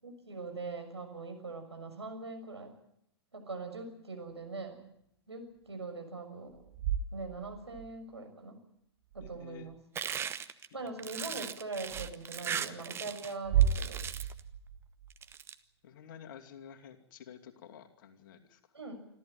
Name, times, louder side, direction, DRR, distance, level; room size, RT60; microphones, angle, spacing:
voice 1, 0.0-2.7 3.3-4.8 5.3-6.6 7.1-8.6 9.1-9.8 10.7-14.0 18.7-19.1, right 3 dB, 80° right, 4 dB, 6.3 m, -42 dB
sound 1, 6.5-7.9 9.1-9.8 11.9-12.1 13.4-15.3, right 9 dB, 40° right, 1.8 m, -33 dB
voice 2, 9.2-9.7 10.8-10.9 12.7-12.9 15.8-18.6, left 8 dB, 50° left, 5 dB, 2.6 m, -51 dB
sound 2, 10.0-13.3 13.6-14.4 15.1-15.5, right 8 dB, 15° right, 1.0 m, -38 dB
26.5 x 14.0 x 9.1 m, 0.76 s
figure-of-eight pair, 110°, 14 cm